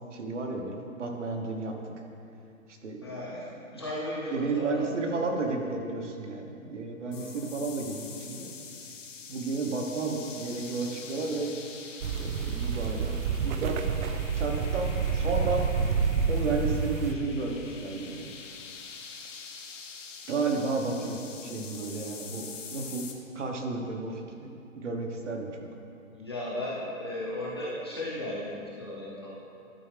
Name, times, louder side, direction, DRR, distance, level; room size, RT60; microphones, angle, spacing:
voice 1, 0.1-1.8 2.8-3.4 3.7-3.8 4.3-8.5 9.3-11.5 12.2-13.1 13.4-13.8 14.3-15.6 16.3-18.3 20.3-23.1 23.3-25.5, right 3 dB, 60° right, 2 dB, 1.2 m, -32 dB
voice 2, 3.0-3.5 3.7-5.3 7.1-7.4 26.1-29.5, left 1 dB, 20° left, -8 dB, 0.6 m, -36 dB
sound 1, 7.1-23.1, left 5 dB, 65° left, 1.1 m, -45 dB
sound 2, 12.0-17.1, right 6 dB, 80° right, 0.6 m, -28 dB
12.0 x 4.6 x 3.4 m, 2.6 s
hypercardioid pair, 170°, 41 cm